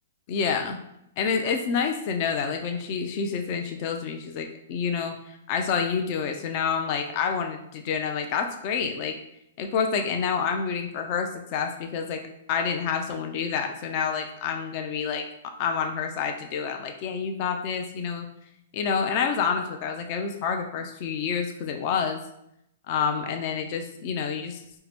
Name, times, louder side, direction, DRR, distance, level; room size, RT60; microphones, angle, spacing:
voice 1, 0.3-0.8 1.2-5.1 5.5-9.2 9.6-12.2 12.5-15.3 15.6-18.3 18.7-22.2 22.9-24.6, left 6 dB, 40° left, 4 dB, 0.5 m, -28 dB
4.6 x 2.1 x 3.3 m, 0.79 s
hypercardioid pair, 145°, 0 cm